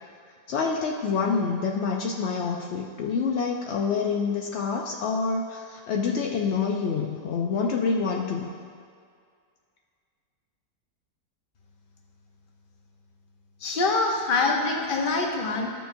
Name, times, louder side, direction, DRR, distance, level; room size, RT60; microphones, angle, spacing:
voice 1, 0.5-8.5, left 5 dB, 75° left, 0 dB, 0.6 m, -27 dB
voice 2, 13.6-15.7, left 3 dB, 45° left, 1 dB, 0.7 m, -25 dB
13.0 x 6.9 x 2.6 m, 2.1 s
omnidirectional pair, 1.8 m